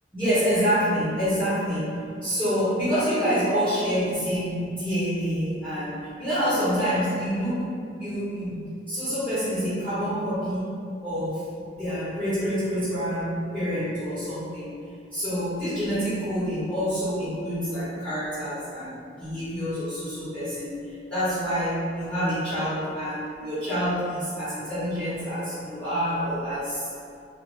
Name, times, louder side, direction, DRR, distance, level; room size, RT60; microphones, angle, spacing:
voice 1, 0.1-7.7 8.0-10.7 11.0-11.5 11.8-14.7 15.1-20.8 21.1-26.9, equal, 5° left, -14 dB, 0.8 m, -27 dB
2.4 x 2.3 x 2.9 m, 2.4 s
head